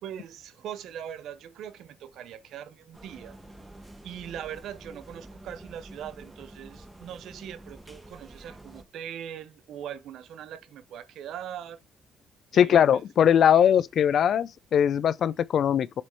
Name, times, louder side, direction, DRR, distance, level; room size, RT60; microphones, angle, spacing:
voice 1, 0.0-3.4 4.0-11.8 12.5-12.7, right 9 dB, 80° right, 0.7 m, -41 dB
sound 1, 2.9-8.8, right 1 dB, 15° right, 1.4 m, -48 dB
voice 2, 12.5-16.0, left 9 dB, 65° left, 0.4 m, -21 dB
7.6 x 3.1 x 4.4 m
cardioid pair, 90°, 0 cm